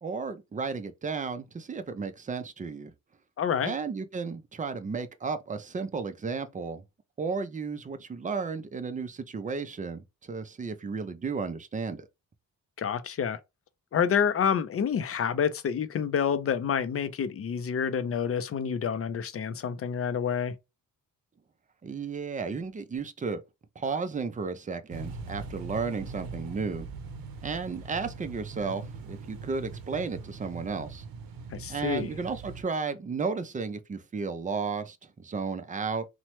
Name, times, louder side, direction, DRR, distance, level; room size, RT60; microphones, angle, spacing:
voice 1, 0.0-2.9 3.6-6.8 7.2-12.1 21.8-23.4 23.8-26.9 27.4-31.0 31.7-36.0, right 5 dB, 25° right, 0.4 m, -33 dB
voice 2, 3.4-3.7 12.8-13.4 13.9-20.5 31.5-32.1, left 7 dB, 40° left, 0.4 m, -28 dB
sound 1, 24.9-32.6, right 4 dB, 85° right, 0.6 m, -41 dB
2.9 x 2.1 x 2.9 m
cardioid pair, 105°, 35 cm